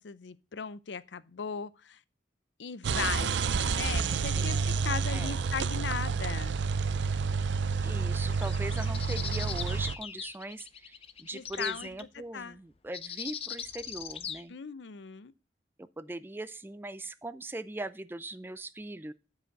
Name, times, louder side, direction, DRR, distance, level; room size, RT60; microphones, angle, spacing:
voice 1, 0.0-2.0 2.6-3.4 3.7-4.6 4.8-6.5 11.3-12.1 12.3-12.6 14.5-15.3, left 6 dB, 85° left, 0.6 m, -37 dB
sound 1, 2.8-10.0, right 5 dB, 90° right, 0.5 m, -29 dB
voice 2, 4.2-4.6 5.1-5.3 7.8-14.6 15.8-19.1, right 2 dB, 10° right, 0.4 m, -40 dB
sound 2, 8.3-12.0 12.9-14.4, left 8 dB, 35° left, 0.6 m, -40 dB
10.0 x 5.0 x 5.2 m
head